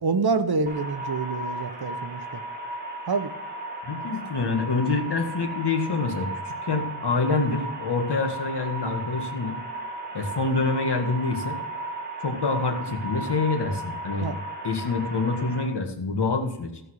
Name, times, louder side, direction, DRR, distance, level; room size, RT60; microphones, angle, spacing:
voice 1, 0.0-2.2 3.1-3.3 14.2-14.4, right 4 dB, 65° right, 1.1 m, -26 dB
sound 1, 0.7-15.7, right 2 dB, 25° right, 3.5 m, -35 dB
voice 2, 3.8-9.6 10.1-11.6 12.2-14.3 14.6-16.8, left 3 dB, 75° left, 1.9 m, -26 dB
15.5 x 5.5 x 6.5 m
wide cardioid pair, 85°, 41 cm